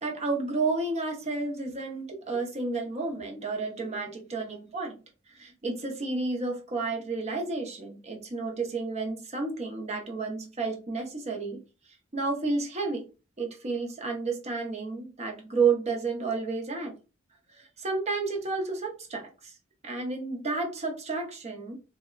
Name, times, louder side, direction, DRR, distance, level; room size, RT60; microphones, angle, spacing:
voice 1, 0.0-5.0 5.3-11.6 12.1-13.0 13.4-16.9 17.5-19.5 19.8-21.8, right 3 dB, 35° right, 2 dB, 0.6 m, -31 dB
2.7 x 2.1 x 2.3 m, 0.32 s
head